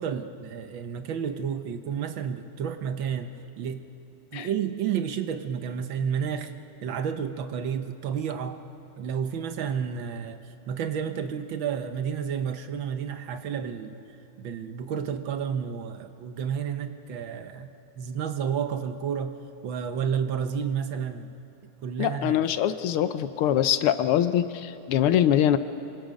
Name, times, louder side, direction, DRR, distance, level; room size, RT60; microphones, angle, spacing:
voice 1, 0.0-3.8 4.3-6.5 6.8-8.6 9.0-10.4 10.7-14.0 14.4-17.7 18.0-19.4 19.6-21.3 21.8-22.5, right 7 dB, 65° right, 8 dB, 1.6 m, -31 dB
voice 2, 22.0-25.6, left 10 dB, 85° left, 12 dB, 1.7 m, -23 dB
26.5 x 24.0 x 5.2 m, 2.8 s
omnidirectional pair, 2.4 m